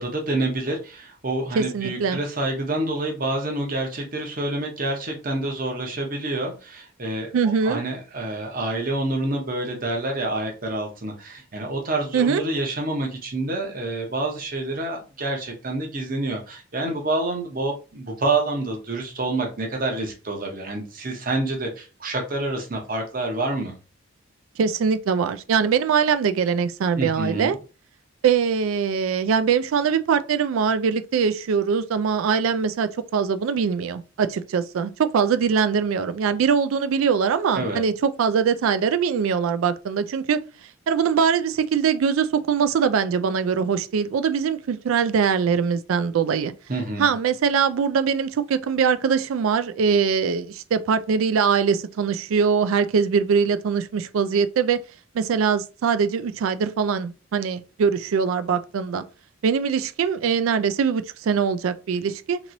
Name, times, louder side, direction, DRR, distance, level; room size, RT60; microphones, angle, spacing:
voice 1, 0.0-7.3 7.6-23.7 27.0-27.6 37.5-37.8 46.7-47.1, right 2 dB, 40° right, 0.8 m, -27 dB
voice 2, 1.6-2.2 7.3-7.8 12.1-12.4 24.6-27.6 28.2-40.4 40.9-46.5 47.0-54.8 55.1-59.0 59.4-62.4, right 6 dB, 80° right, 0.3 m, -22 dB
2.9 x 2.9 x 2.6 m
head